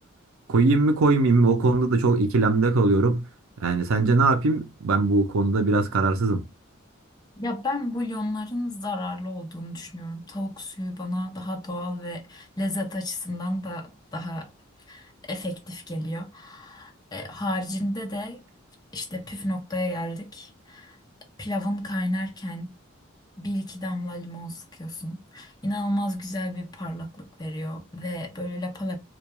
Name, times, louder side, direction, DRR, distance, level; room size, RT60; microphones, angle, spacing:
voice 1, 0.5-3.2 3.6-6.4, right 3 dB, 85° right, 0.5 m, -21 dB
voice 2, 7.4-14.5 14.9-18.4 18.9-21.0 21.4-22.7 23.4-29.0, left 1 dB, 20° left, 0.5 m, -32 dB
2.2 x 2.2 x 2.9 m
head